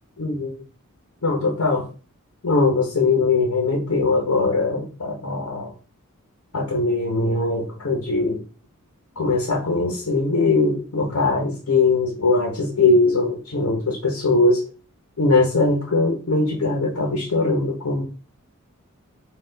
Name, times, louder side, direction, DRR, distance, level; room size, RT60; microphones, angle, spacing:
voice 1, 0.2-0.5 1.2-1.9 2.4-5.7 6.5-8.4 9.2-14.6 15.2-18.1, left 3 dB, 70° left, 0 dB, 0.9 m, -21 dB
4.2 x 2.4 x 3.8 m, 0.37 s
head